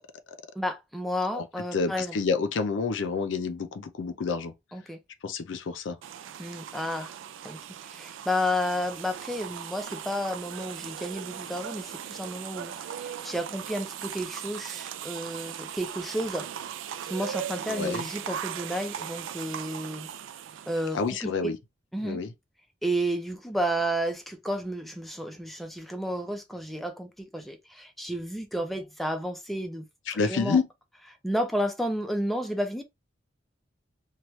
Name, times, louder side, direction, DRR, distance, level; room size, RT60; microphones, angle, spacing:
voice 1, 0.6-2.1 4.7-5.0 6.4-7.2 7.4-16.5 17.0-20.1 20.7-21.5 21.9-22.2 22.8-29.9 30.1-30.6 31.2-32.8, equal, ahead, 0.4 m, -32 dB
voice 2, 1.7-4.5 5.2-6.0 17.7-18.1 20.9-21.6 22.0-22.3 30.1-30.7, left 4 dB, 75° left, 0.4 m, -28 dB
sound 1, 6.0-21.2, right 9 dB, 85° right, 0.3 m, -39 dB
3.0 x 2.2 x 3.0 m
head